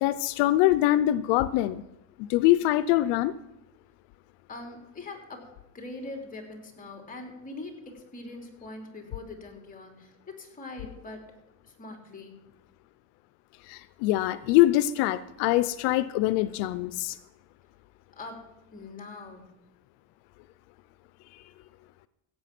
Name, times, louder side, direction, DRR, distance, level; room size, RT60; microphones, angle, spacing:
voice 1, 0.0-1.8 2.2-3.3 13.7-17.2, left 15 dB, 90° left, 15 dB, 0.6 m, -24 dB
voice 2, 4.5-11.3 11.6-12.4 18.2-18.4 18.7-19.5, left 2 dB, 20° left, 3 dB, 3.2 m, -42 dB
16.0 x 8.4 x 6.0 m, 0.93 s
cardioid pair, 120°, 38 cm